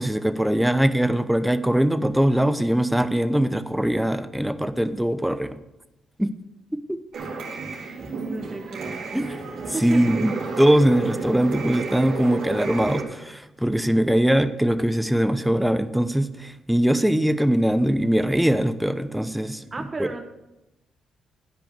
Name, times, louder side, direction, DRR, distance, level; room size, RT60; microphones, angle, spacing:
voice 1, 0.0-5.6 6.2-6.3 6.7-7.0 9.1-9.4 9.8-20.1, right 1 dB, 5° right, 11 dB, 0.8 m, -22 dB
sound 1, 7.1-13.0, right 4 dB, 70° right, 2.7 m, -32 dB
voice 2, 8.2-9.4 9.7-10.0 19.7-20.3, right 3 dB, 35° right, 4 dB, 1.1 m, -34 dB
12.5 x 5.0 x 6.7 m, 0.94 s
supercardioid pair, 65°, 0 cm